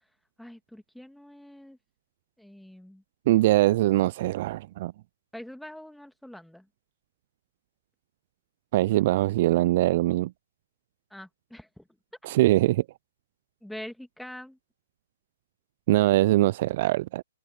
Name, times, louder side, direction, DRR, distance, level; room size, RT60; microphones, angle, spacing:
voice 1, 0.4-1.8 2.4-3.0 5.3-6.7 11.1-11.8 13.6-14.6, left 1 dB, ahead, 2.2 m, -44 dB
voice 2, 3.3-4.9 8.7-10.3 12.2-12.8 15.9-17.2, right 16 dB, 45° right, 0.3 m, -22 dB
hypercardioid pair, 140°, 0 cm